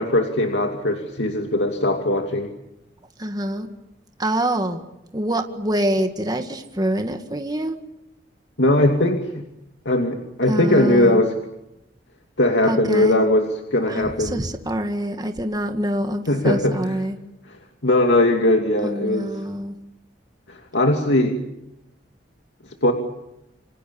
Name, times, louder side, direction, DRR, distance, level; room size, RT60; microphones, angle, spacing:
voice 1, 0.0-2.5 8.6-9.4 9.8-11.3 12.4-14.4 16.3-17.0 17.5-19.3 20.5-21.4 22.8-22.9, left 1 dB, 85° left, 3 dB, 2.7 m, -20 dB
voice 2, 3.2-3.7 4.2-4.8 5.1-7.8 10.5-11.2 12.7-13.2 13.9-17.2 18.8-19.8, right 1 dB, 25° right, 6 dB, 2.0 m, -25 dB
28.5 x 26.5 x 7.1 m, 0.89 s
head